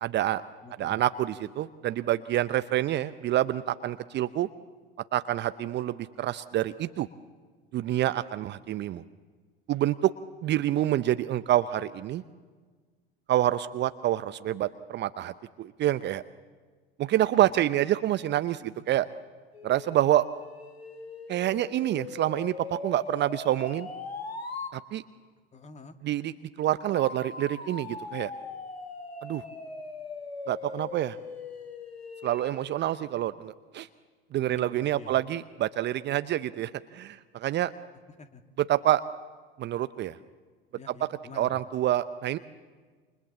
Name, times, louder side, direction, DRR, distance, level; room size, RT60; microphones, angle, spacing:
voice 1, 0.0-0.4 0.8-4.5 5.1-7.1 7.7-9.0 9.7-10.1 10.4-12.2 13.3-16.2 17.0-19.1 19.6-20.2 21.3-23.9 24.7-25.0 26.0-26.3 26.6-28.3 29.2-29.4 30.5-31.2 32.2-33.9 34.3-37.7 38.7-39.0 39.6-40.2 41.4-42.4, right 13 dB, 35° right, 13 dB, 0.8 m, -27 dB
voice 2, 0.6-1.0 25.5-26.0 34.4-35.2 38.2-38.4 40.8-41.6, left 3 dB, 20° left, 7 dB, 2.3 m, -47 dB
sound 1, 19.5-24.8 26.9-32.8, left 4 dB, 85° left, 2.0 m, -40 dB
29.5 x 27.5 x 7.3 m, 1.5 s
figure-of-eight pair, 80°, 30 cm